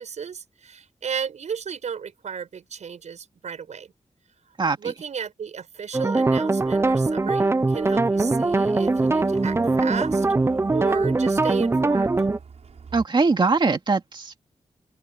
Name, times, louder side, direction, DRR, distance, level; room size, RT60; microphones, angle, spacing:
voice 1, 0.0-3.9 4.5-10.3 10.7-12.1, right 7 dB, 90° right, 7.3 m, -34 dB
sound 1, 5.9-12.4, right 3 dB, 20° right, 0.6 m, -21 dB
Truck, 6.6-13.1, right 6 dB, 70° right, 6.2 m, -46 dB
voice 2, 12.9-14.4, right 4 dB, 40° right, 2.2 m, -21 dB
open air
wide cardioid pair, 105°, 12 cm